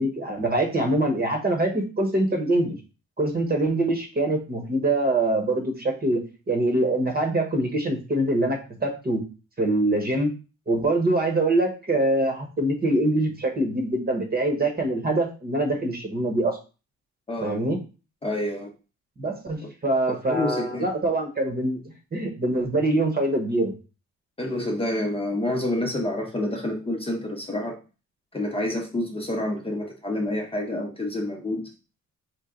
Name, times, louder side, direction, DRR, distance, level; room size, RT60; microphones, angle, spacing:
voice 1, 0.0-2.8 3.2-6.2 6.5-9.2 9.6-10.3 10.7-16.6 17.4-17.8 19.2-21.8 22.1-23.7, right 1 dB, 30° right, 3 dB, 1.2 m, -24 dB
voice 2, 17.3-17.6 18.2-18.7 20.3-20.9 24.4-27.8 28.3-31.7, left 1 dB, 20° left, 1 dB, 0.8 m, -28 dB
4.5 x 2.3 x 3.8 m, 0.33 s
cardioid pair, 90°, 30 cm